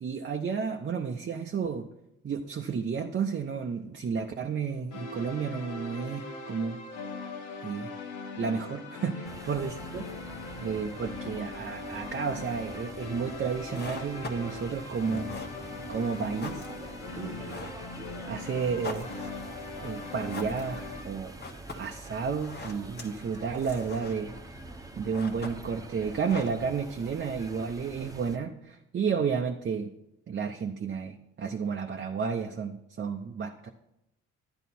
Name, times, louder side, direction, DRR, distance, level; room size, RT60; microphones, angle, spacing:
voice 1, 0.0-1.9 2.2-6.8 7.6-7.9 8.4-10.0 10.6-15.4 15.9-16.6 17.2-17.6 18.3-19.1 19.8-21.3 21.7-24.3 25.0-29.9 30.3-33.7, right 6 dB, 35° right, 3 dB, 0.7 m, -32 dB
sound 1, 4.9-21.0, left 3 dB, 90° left, 1.4 m, -40 dB
sound 2, 9.2-28.4, right 2 dB, 10° right, 1.0 m, -45 dB
sound 3, 13.5-27.1, left 3 dB, 35° left, 1.3 m, -45 dB
11.5 x 9.2 x 4.3 m, 0.88 s
cardioid pair, 90°, 30 cm